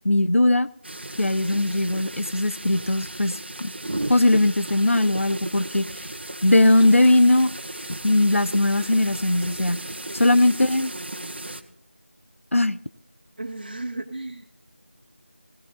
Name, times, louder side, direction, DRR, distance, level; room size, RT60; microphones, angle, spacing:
voice 1, 0.0-0.7 1.2-3.7 4.1-5.9 6.4-7.5 8.0-9.8 10.2-10.9 12.5-12.8, left 1 dB, 85° left, 14 dB, 0.8 m, -19 dB
sound 1, 0.8-11.6, right 1 dB, 55° right, 1.5 m, -35 dB
voice 2, 10.1-11.6 13.4-14.5, right 2 dB, 40° right, -3 dB, 1.7 m, -37 dB
19.5 x 17.0 x 2.5 m, 0.68 s
figure-of-eight pair, 170°, 7 cm